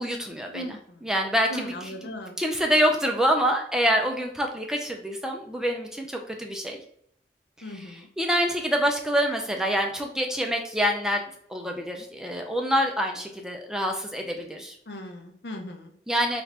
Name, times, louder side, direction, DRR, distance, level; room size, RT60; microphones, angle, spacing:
voice 1, 0.0-2.1 2.4-6.8 7.6-11.2 11.5-14.8 16.1-16.4, equal, 5° right, 2 dB, 0.4 m, -26 dB
voice 2, 0.5-1.0 1.5-2.4 7.6-8.1 14.9-15.9, left 1 dB, 70° left, 4 dB, 0.7 m, -38 dB
4.1 x 2.5 x 3.2 m, 0.67 s
head